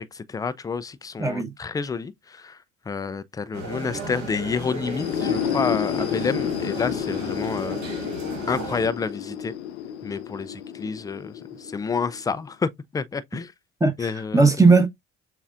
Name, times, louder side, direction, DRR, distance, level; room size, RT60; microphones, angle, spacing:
voice 1, 0.0-2.6 2.9-7.8 8.5-9.5 10.0-13.5 14.0-14.4, left 5 dB, 10° left, 0.3 m, -29 dB
voice 2, 1.2-1.5 13.8-14.9, right 4 dB, 10° right, 1.0 m, -18 dB
sound 1, 3.5-8.9, right 2 dB, 60° right, 2.1 m, -35 dB
sound 2, 4.8-12.5, left 9 dB, 85° left, 0.5 m, -30 dB
6.9 x 2.4 x 2.4 m
hypercardioid pair, 55°, 33 cm